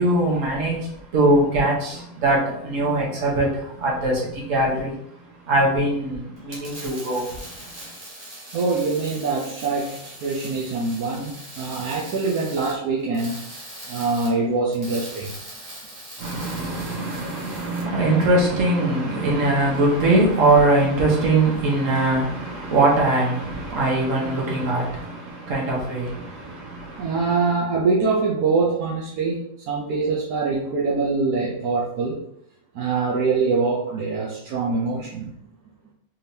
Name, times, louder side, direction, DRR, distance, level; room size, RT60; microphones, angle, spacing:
voice 1, 0.0-5.0 5.4-7.7 16.2-27.5, right 2 dB, 55° right, 1.4 m, -22 dB
sound 1, 6.4-17.8, right 1 dB, 25° right, 1.5 m, -40 dB
voice 2, 8.5-9.9 10.2-13.4 13.9-15.3 27.0-29.4 29.7-32.2 32.7-35.3, right 4 dB, 75° right, 1.2 m, -24 dB
4.3 x 3.4 x 2.8 m
omnidirectional pair, 1.6 m